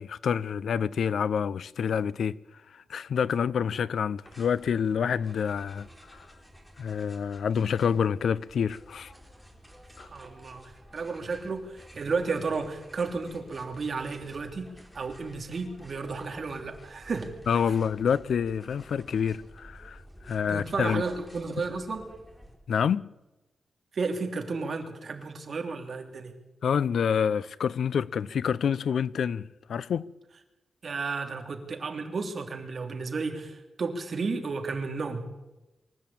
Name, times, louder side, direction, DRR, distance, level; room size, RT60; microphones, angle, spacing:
voice 1, 0.0-2.4 2.7-6.3 6.8-9.1 10.0-10.1 17.5-21.0 22.7-23.1 26.6-30.1, left 7 dB, 80° left, 0.6 m, -28 dB
sound 1, 4.2-22.6, equal, 5° left, 3.9 m, -52 dB
voice 2, 10.0-10.6 10.9-17.3 20.5-22.1 23.9-26.3 30.8-35.2, right 4 dB, 45° right, 3.1 m, -33 dB
24.5 x 14.5 x 8.7 m
wide cardioid pair, 150°, 0 cm